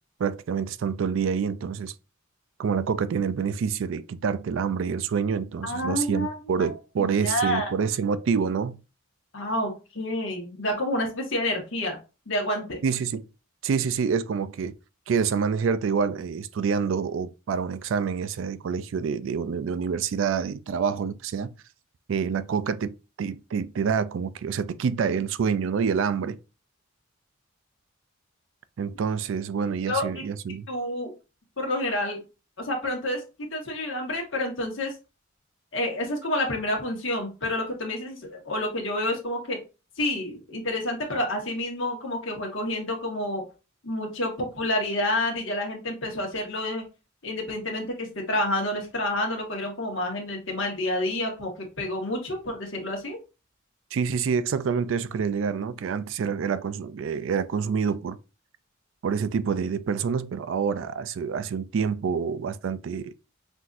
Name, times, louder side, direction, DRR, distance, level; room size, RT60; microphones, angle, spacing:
voice 1, 0.2-1.9 2.6-8.8 12.8-13.3 13.6-14.8 15.1-21.5 22.1-26.4 28.8-30.7 53.9-58.2 59.0-63.1, right 6 dB, 65° right, 0.3 m, -27 dB
voice 2, 5.6-7.7 9.3-12.0 12.3-12.8 29.9-30.2 30.7-31.1 31.6-32.2 32.6-33.2 33.5-34.9 35.7-39.6 40.0-43.4 43.8-46.8 47.2-53.2, left 1 dB, 65° left, 1.3 m, -29 dB
5.9 x 2.6 x 2.5 m
head